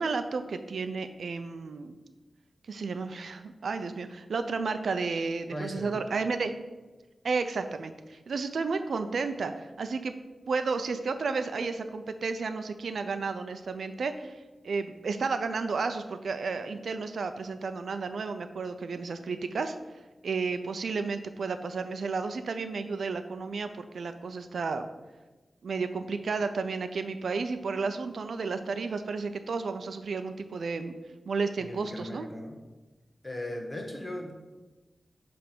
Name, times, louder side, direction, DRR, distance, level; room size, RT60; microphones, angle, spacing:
voice 1, 0.0-1.9 2.7-6.5 7.2-10.1 10.5-19.7 20.2-24.9 25.6-30.9 31.3-32.3, right 4 dB, 80° right, 9 dB, 0.5 m, -32 dB
voice 2, 5.5-6.0 31.6-32.6 33.2-34.3, left 1 dB, 15° left, 1 dB, 1.4 m, -38 dB
10.0 x 3.4 x 6.0 m, 1.2 s
wide cardioid pair, 130°, 0 cm